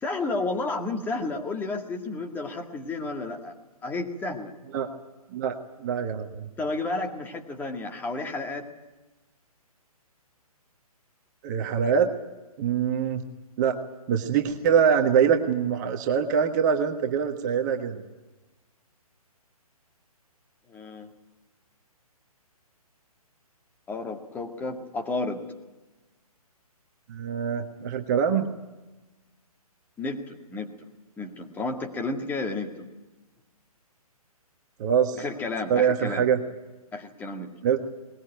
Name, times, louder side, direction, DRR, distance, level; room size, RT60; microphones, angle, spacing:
voice 1, 0.0-3.5 3.8-4.5 6.6-8.7 20.7-21.1 23.9-25.4 30.0-30.7 31.2-32.9 35.1-36.3 36.9-37.5, left 3 dB, 10° left, 3 dB, 1.9 m, -32 dB
voice 2, 5.3-6.5 11.4-12.1 12.6-13.2 13.6-13.8 14.1-18.0 27.1-28.5 34.8-35.2 35.7-36.4 37.6-37.8, right 7 dB, 30° right, 4 dB, 1.5 m, -24 dB
21.0 x 20.5 x 9.2 m, 1.1 s
figure-of-eight pair, 135°, 19 cm